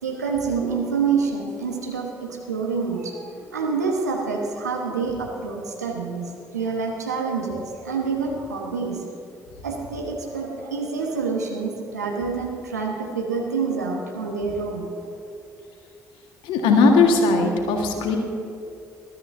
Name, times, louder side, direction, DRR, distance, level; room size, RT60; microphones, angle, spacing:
voice 1, 0.0-9.2 9.6-14.9, right 5 dB, 90° right, 0 dB, 1.0 m, -27 dB
voice 2, 16.4-18.2, left 3 dB, 70° left, 3 dB, 1.6 m, -18 dB
21.0 x 13.0 x 2.7 m, 2.5 s
figure-of-eight pair, 45°, 9 cm